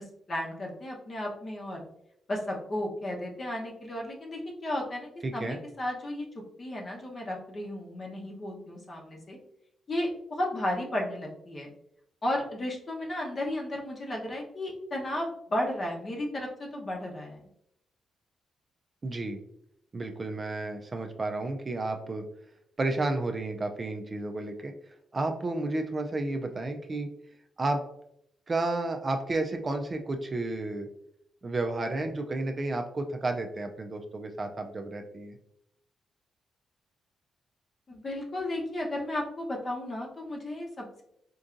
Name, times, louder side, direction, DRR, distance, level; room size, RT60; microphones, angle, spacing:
voice 1, 0.0-1.8 2.3-6.2 6.6-9.4 9.9-11.7 12.2-17.4 37.9-41.0, left 1 dB, 40° left, 0 dB, 0.9 m, -34 dB
voice 2, 5.2-5.6 19.0-19.4 19.9-22.2 22.8-24.7 25.1-27.1 27.6-27.8 28.5-30.9 31.4-35.4, right 2 dB, 35° right, 5 dB, 0.4 m, -31 dB
4.5 x 2.6 x 2.5 m, 0.77 s
cardioid pair, 85°, 0 cm